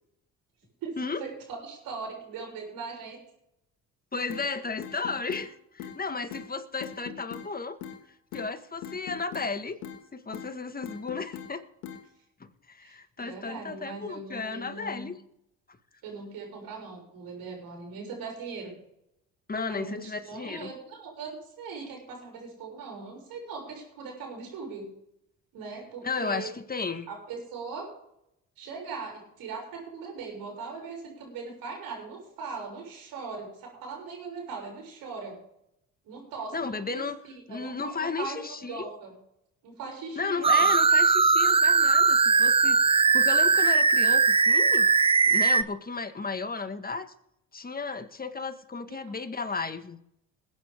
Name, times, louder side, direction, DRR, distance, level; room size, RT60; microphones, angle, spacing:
voice 1, 0.8-3.2 12.8-15.1 16.0-18.7 19.7-24.8 25.5-26.5 27.1-27.9 28.6-35.4 36.0-39.1 39.6-40.7 48.9-49.0, right 4 dB, 75° right, 1 dB, 6.8 m, -40 dB
voice 2, 4.1-7.8 8.3-9.8 10.1-11.7 12.7-15.2 19.5-20.7 26.0-27.1 36.5-37.2 37.5-38.9 40.2-42.8 43.1-44.9 45.3-47.1 47.5-50.0, left 4 dB, 25° left, 8 dB, 1.7 m, -34 dB
sound 1, 4.3-4.5 4.8-5.5 5.8-6.0 6.3-6.5 6.8-7.5 7.8-8.0 8.3-8.5 8.8-9.5 9.8-10.0 10.3-10.5 10.8-11.5 11.8-12.0, left 9 dB, 90° left, 1.9 m, -40 dB
sound 2, 40.4-45.6, right 4 dB, 15° right, 0.5 m, -20 dB
21.5 x 9.4 x 3.7 m, 0.77 s
supercardioid pair, 70°, 35 cm